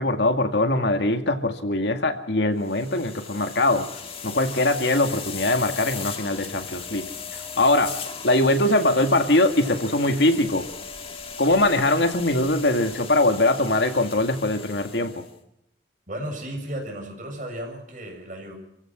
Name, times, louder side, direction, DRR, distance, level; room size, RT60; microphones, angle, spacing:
voice 1, 0.0-3.9 4.2-7.0 7.6-7.9 8.2-10.7 11.4-15.2, left 2 dB, 70° left, 7 dB, 2.1 m, -22 dB
sound 1, 2.6-15.3, left 6 dB, 30° left, 2.0 m, -38 dB
voice 2, 16.1-18.5, right 1 dB, 45° right, 3 dB, 7.1 m, -34 dB
28.0 x 16.0 x 6.2 m, 0.77 s
head